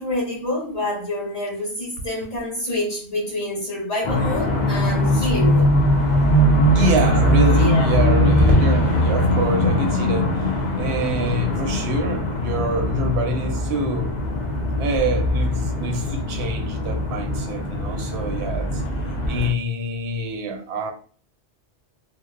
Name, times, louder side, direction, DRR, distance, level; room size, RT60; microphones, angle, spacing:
voice 1, 0.0-5.7 6.7-7.1 7.6-7.9, left 1 dB, 35° left, 1.0 m, -27 dB
sound 1, 4.0-19.5, equal, 55° left, 0.5 m, -21 dB
voice 2, 6.7-14.2 14.8-18.8 19.3-20.9, right 1 dB, 70° right, 0.8 m, -25 dB
2.6 x 2.0 x 2.3 m
omnidirectional pair, 1.2 m